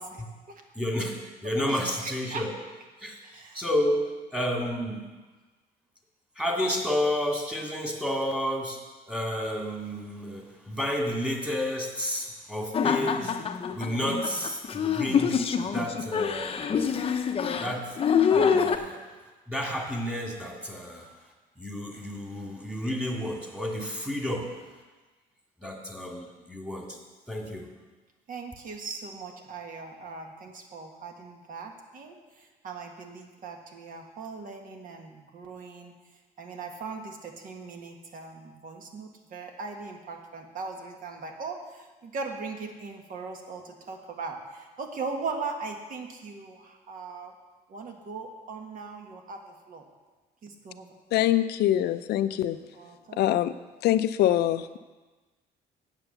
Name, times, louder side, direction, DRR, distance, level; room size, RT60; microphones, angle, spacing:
voice 1, 0.0-0.6 1.7-2.4 3.2-3.6 28.3-35.9 36.4-47.3 47.7-49.4 49.7-49.8 50.4-50.9 52.7-53.2, right 4 dB, 55° right, 3 dB, 1.7 m, -39 dB
voice 2, 0.8-2.5 3.0-4.1 4.3-5.1 6.4-8.8 9.1-13.3 13.7-16.9 17.5-17.9 18.3-19.0 19.5-21.1 21.6-24.5 25.6-27.0 27.3-27.7, left 1 dB, 5° right, 0 dB, 2.2 m, -31 dB
sound 1, 12.7-18.8, left 7 dB, 35° left, 0.7 m, -26 dB
voice 3, 51.1-52.6 53.2-53.5 53.8-54.8, left 12 dB, 75° left, 13 dB, 0.5 m, -24 dB
9.0 x 7.9 x 6.8 m, 1.3 s
cardioid pair, 110°, 17 cm